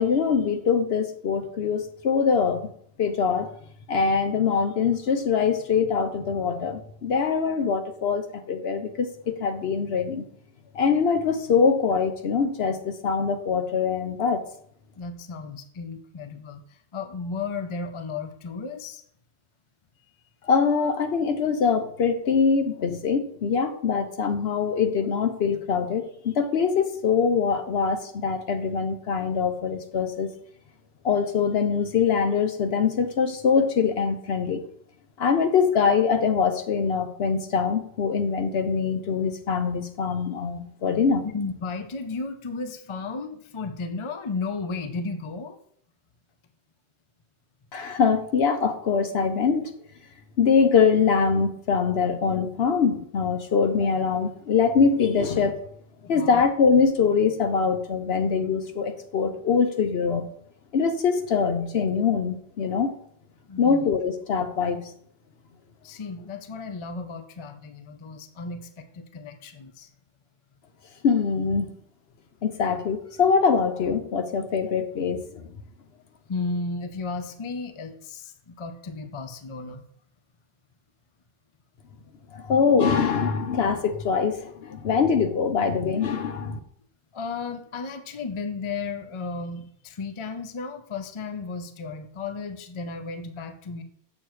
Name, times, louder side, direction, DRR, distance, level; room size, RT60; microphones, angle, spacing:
voice 1, 0.0-2.7 3.0-3.5 3.9-10.2 10.7-14.4 20.5-30.3 31.0-34.6 35.2-41.3 47.7-49.7 50.4-55.6 56.1-60.3 60.7-63.0 63.6-64.8 71.0-71.7 72.4-75.5 82.3-86.6, left 5 dB, 65° left, 7 dB, 0.9 m, -23 dB
voice 2, 15.0-16.6 16.9-19.0 41.2-45.6 56.0-56.4 63.5-63.9 65.8-69.9 76.3-79.8 87.1-93.8, left 4 dB, 35° left, 8 dB, 0.5 m, -34 dB
7.4 x 6.6 x 3.1 m, 0.63 s
omnidirectional pair, 1.2 m